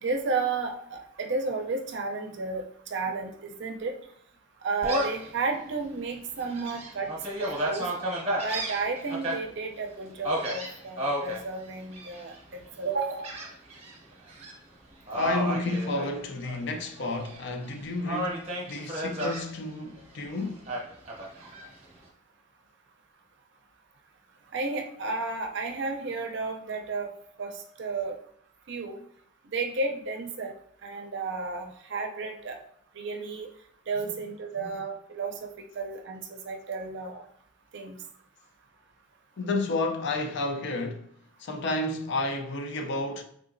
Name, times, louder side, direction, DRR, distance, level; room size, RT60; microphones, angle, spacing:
voice 1, 0.0-2.6 2.9-3.9 4.6-7.1 7.4-7.9 8.4-12.3 12.8-13.3 24.5-27.1 27.4-27.5 27.8-28.2 28.7-29.0 29.5-30.5 30.8-32.6 33.0-33.5 33.9-37.2 37.7-38.0, right 3 dB, 60° right, 0.5 m, -32 dB
Gull seagull, 4.8-5.3 5.8-5.9 6.4-9.3 10.2-11.4 11.9-12.4 13.2-13.9 14.3-14.5 15.1-16.6 17.0-17.7 18.0-19.4 20.7-21.7, right 1 dB, 30° right, 0.8 m, -32 dB
voice 2, 15.1-20.6 34.0-34.2 34.6-34.8 39.4-41.1 41.4-43.2, left 2 dB, 55° left, 0.4 m, -31 dB
3.6 x 2.8 x 2.6 m
head